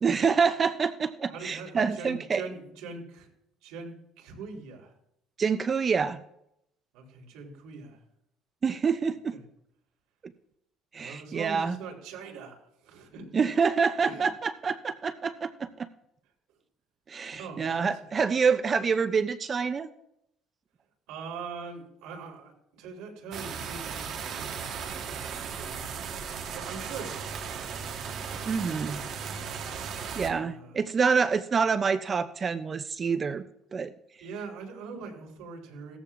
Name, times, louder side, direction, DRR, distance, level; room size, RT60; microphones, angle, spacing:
voice 1, 0.0-2.4 5.4-6.2 8.6-9.3 10.9-11.8 13.3-15.9 17.1-19.9 28.5-29.0 30.2-33.4 33.7-33.9, right 5 dB, 20° right, 11 dB, 0.4 m, -27 dB
voice 2, 1.3-3.3 3.6-4.9 6.9-8.0 9.3-9.4 11.0-13.2 14.0-14.3 16.5-16.6 17.3-18.1 21.1-25.0 25.3-26.0 26.4-27.9 28.3-29.1 30.3-30.9 34.2-36.0, right 4 dB, 85° right, 0 dB, 3.4 m, -43 dB
sound 1, 23.3-30.3, right 6 dB, 45° right, 1.3 m, -36 dB
18.0 x 14.0 x 2.5 m, 0.77 s
cardioid pair, 175°, 0 cm